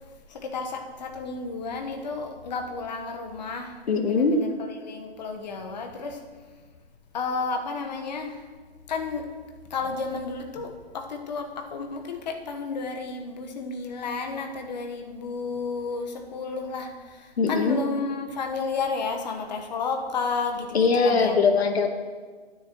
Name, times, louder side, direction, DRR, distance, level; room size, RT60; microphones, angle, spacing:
voice 1, 0.3-4.5 4.8-6.2 7.1-8.4 8.9-9.3 9.7-21.4, left 4 dB, 45° left, 3 dB, 1.3 m, -32 dB
voice 2, 3.9-4.4 17.4-17.9 20.7-21.9, left 4 dB, 90° left, 4 dB, 1.4 m, -21 dB
12.5 x 9.7 x 3.1 m, 1.5 s
hypercardioid pair, 165°, 31 cm